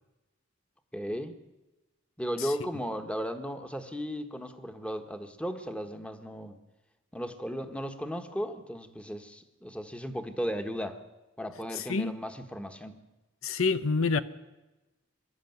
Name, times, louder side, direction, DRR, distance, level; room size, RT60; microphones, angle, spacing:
voice 1, 0.9-1.3 2.2-6.6 7.1-11.0 11.4-13.0, equal, 5° left, 7 dB, 1.4 m, -35 dB
voice 2, 11.7-12.1 13.4-14.2, left 4 dB, 80° left, 13 dB, 0.8 m, -27 dB
24.0 x 13.0 x 9.4 m, 1.1 s
head